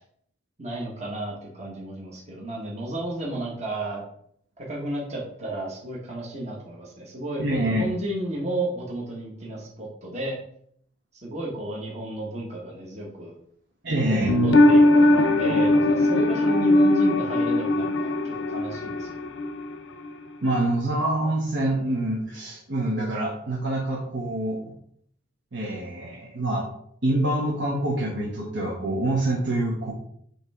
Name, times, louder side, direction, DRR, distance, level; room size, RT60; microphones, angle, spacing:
voice 1, 0.6-4.0 4.6-10.4 11.2-13.3 13.9-19.3, right 1 dB, 35° right, -3 dB, 1.4 m, -33 dB
voice 2, 7.4-7.9 13.8-14.3 20.4-24.7 25.5-26.6 27.0-29.9, right 1 dB, 65° right, -2 dB, 1.1 m, -26 dB
ambient guitar pad, 14.3-19.8 20.0-20.1, left 1 dB, 70° left, 0.6 m, -20 dB
8.3 x 3.2 x 3.6 m, 0.66 s
head